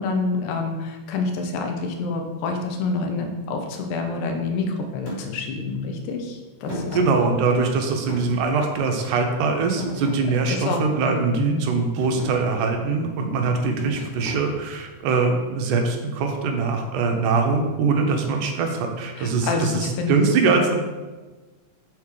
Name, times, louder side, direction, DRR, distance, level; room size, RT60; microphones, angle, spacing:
voice 1, 0.0-7.0 10.4-11.7 19.2-20.2 20.5-20.7, left 4 dB, 80° left, 3 dB, 2.1 m, -27 dB
Thump thud, 5.1-5.2 6.6-7.7 8.1-9.1 9.5-10.9 11.5-11.7 12.0-12.4 13.8-14.9, left 1 dB, 40° left, 1.5 m, -34 dB
voice 2, 6.9-20.7, right 4 dB, 80° right, 3 dB, 2.2 m, -22 dB
6.5 x 3.6 x 4.7 m, 1.2 s
omnidirectional pair, 3.7 m